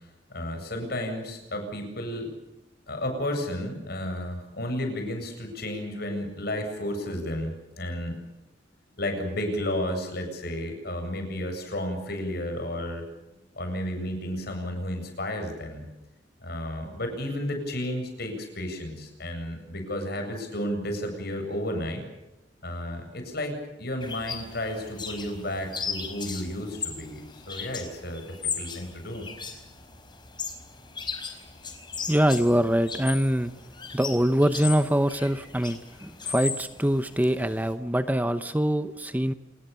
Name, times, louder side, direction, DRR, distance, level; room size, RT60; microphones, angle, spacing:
voice 1, 0.3-2.3 2.9-8.2 9.0-13.1 13.5-15.9 16.4-22.0 22.6-28.2 28.6-29.3, left 1 dB, 60° left, 6 dB, 7.8 m, -32 dB
sound 1, 24.0-37.7, left 5 dB, 25° left, 4.7 m, -37 dB
voice 2, 32.1-33.5 33.9-39.3, equal, 10° right, 10 dB, 0.9 m, -24 dB
28.5 x 20.5 x 7.0 m, 0.98 s
head